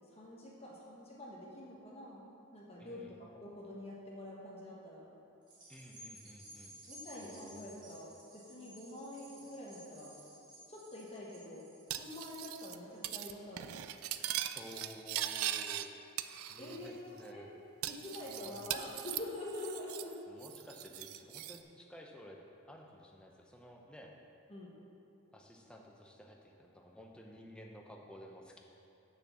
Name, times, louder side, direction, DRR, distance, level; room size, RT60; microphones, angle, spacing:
voice 1, 0.1-2.3 2.5-5.1 6.9-10.2 10.7-13.7 16.6-17.5 17.8-20.2 24.5-24.7, left 1 dB, 30° left, -4 dB, 1.2 m, -46 dB
voice 2, 2.8-3.2 5.7-6.7 7.2-7.7 14.5-15.9 16.5-17.5 18.2-18.7 20.3-22.4 22.7-24.1 25.3-28.6, equal, 5° left, 0 dB, 0.6 m, -53 dB
sound 1, 5.4-14.1 14.6-14.7, right 1 dB, 20° right, 1.5 m, -56 dB
Cutlery silverware, 11.9-12.8 13.0-13.3 13.6-15.9 16.2-16.9 17.2-17.3 17.8-20.1 20.4-21.6, right 12 dB, 80° right, 0.4 m, -40 dB
6.4 x 6.2 x 7.1 m, 2.7 s
head